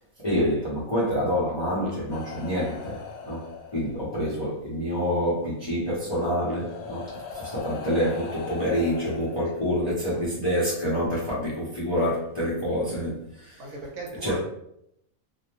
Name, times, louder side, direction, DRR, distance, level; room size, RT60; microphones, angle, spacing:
voice 1, 0.2-3.5 3.7-13.6 14.2-14.4, equal, 30° left, -8 dB, 0.5 m, -27 dB
sound 1, 2.1-4.2 5.6-5.7 6.4-10.0 11.1-11.3, left 5 dB, 75° left, 0.9 m, -40 dB
voice 2, 13.6-14.4, right 2 dB, 70° right, -1 dB, 1.0 m, -38 dB
2.5 x 2.0 x 2.9 m, 0.76 s
omnidirectional pair, 1.5 m